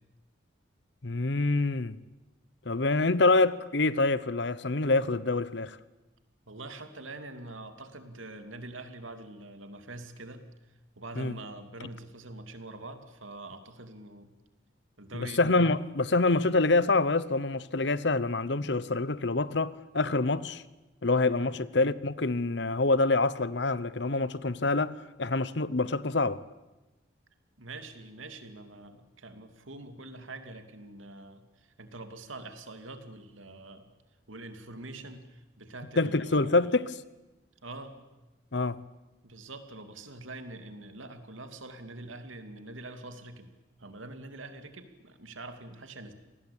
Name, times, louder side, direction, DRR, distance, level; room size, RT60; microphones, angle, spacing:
voice 1, 1.0-2.0 2.7-5.8 11.2-11.3 15.2-20.6 21.0-26.4 36.0-37.0 38.5-38.8, left 3 dB, 60° left, 0.9 m, -26 dB
voice 2, 6.5-10.4 10.9-14.3 15.0-15.4 21.4-21.6 27.6-33.9 34.3-36.5 37.6-38.0 39.2-43.5 43.8-46.1, right 2 dB, 85° right, 2.8 m, -44 dB
27.5 x 19.5 x 8.8 m
head